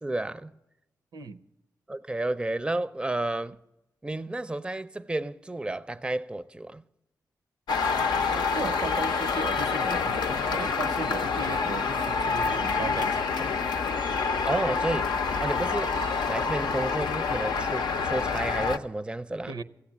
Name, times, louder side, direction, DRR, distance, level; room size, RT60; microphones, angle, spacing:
voice 1, 0.0-0.5 1.9-3.6 4.0-6.8 14.4-15.1 15.4-15.9 16.3-19.6, right 2 dB, 15° right, 0.4 m, -31 dB
sound 1, 7.7-18.8, left 5 dB, 85° left, 0.6 m, -27 dB
voice 2, 8.2-13.3 14.3-14.4 19.5-19.6, right 4 dB, 80° right, 0.6 m, -36 dB
15.0 x 8.6 x 7.2 m
cardioid pair, 50°, 7 cm